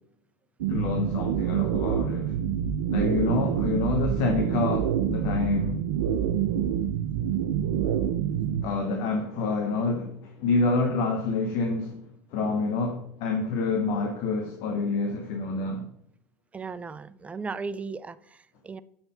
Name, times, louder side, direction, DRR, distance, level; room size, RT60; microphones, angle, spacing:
sound 1, 0.6-8.6, right 9 dB, 75° right, 0.5 m, -27 dB
voice 1, 0.7-2.3 2.9-5.8 8.6-12.0 12.3-15.9, left 3 dB, 60° left, 0.9 m, -27 dB
voice 2, 16.5-18.8, right 4 dB, 15° right, 0.3 m, -36 dB
6.9 x 4.4 x 3.9 m
hypercardioid pair, 100°, 10 cm